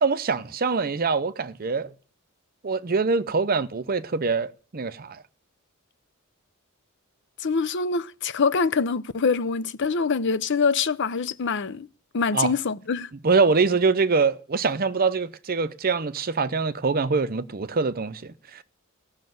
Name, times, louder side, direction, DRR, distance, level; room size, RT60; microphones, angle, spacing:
voice 1, 0.0-1.9 2.6-5.2 12.3-12.5 13.2-18.6, right 4 dB, 45° right, 0.7 m, -24 dB
voice 2, 7.4-11.9 12.1-13.1, left 5 dB, 60° left, 0.6 m, -24 dB
16.5 x 6.5 x 9.2 m
head